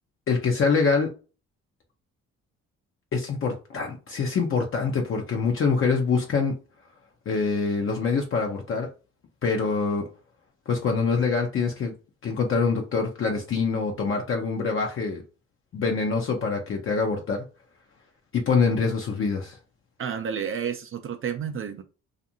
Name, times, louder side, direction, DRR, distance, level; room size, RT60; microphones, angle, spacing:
voice 1, 0.3-1.1 3.1-6.5 7.3-8.9 9.4-10.1 10.7-11.9 12.2-15.2 15.7-17.4 18.3-19.6, left 4 dB, 45° left, 0.6 m, -25 dB
voice 2, 20.0-21.8, right 7 dB, 45° right, 0.4 m, -30 dB
2.5 x 2.5 x 2.7 m
cardioid pair, 90°, 30 cm